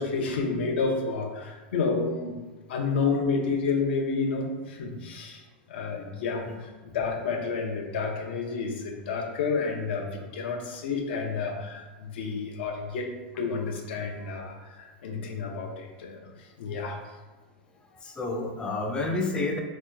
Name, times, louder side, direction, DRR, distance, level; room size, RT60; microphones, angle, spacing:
voice 1, 0.0-2.4 2.7-5.4 5.7-17.0, left 4 dB, 75° left, 3 dB, 0.5 m, -30 dB
voice 2, 18.0-19.6, left 2 dB, 15° left, 2 dB, 0.3 m, -30 dB
2.8 x 2.1 x 3.6 m, 1.3 s
supercardioid pair, 145°, 6 cm